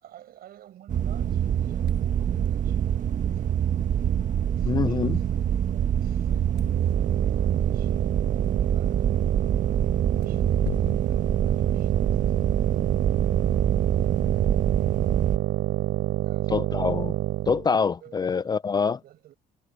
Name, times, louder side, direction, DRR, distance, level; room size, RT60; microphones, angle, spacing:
voice 1, 0.0-3.6 4.5-6.8 7.2-7.9 8.3-9.0 10.1-12.3 16.2-16.5 18.0-18.6 19.0-19.3, right 12 dB, 65° right, 5.5 m, -52 dB
sound 1, 0.9-15.4, right 9 dB, 50° right, 1.4 m, -25 dB
sound 2, 1.7-12.2, left 11 dB, 60° left, 5.9 m, -46 dB
voice 2, 4.6-5.2 16.5-17.2 17.5-19.0, left 5 dB, 25° left, 0.4 m, -25 dB
sound 3, 6.5-17.7, right 16 dB, 80° right, 3.5 m, -28 dB
cardioid pair, 110°, 17 cm